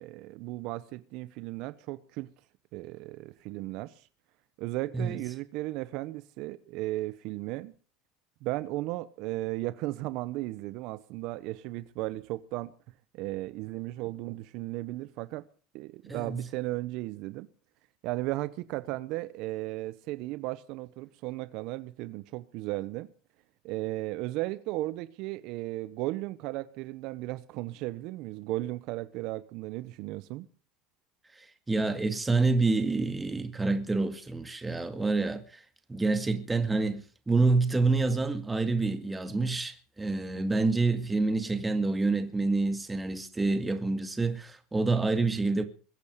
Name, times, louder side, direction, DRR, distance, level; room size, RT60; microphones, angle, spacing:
voice 1, 0.0-2.3 2.7-4.1 4.6-7.7 8.4-12.7 13.1-15.4 15.7-17.5 18.0-23.1 23.6-30.5, right 18 dB, 65° right, 0.9 m, -35 dB
voice 2, 16.1-16.4 31.7-35.4 35.9-45.6, right 3 dB, 15° right, 2.1 m, -27 dB
22.5 x 8.4 x 6.7 m
supercardioid pair, 100°, 0 cm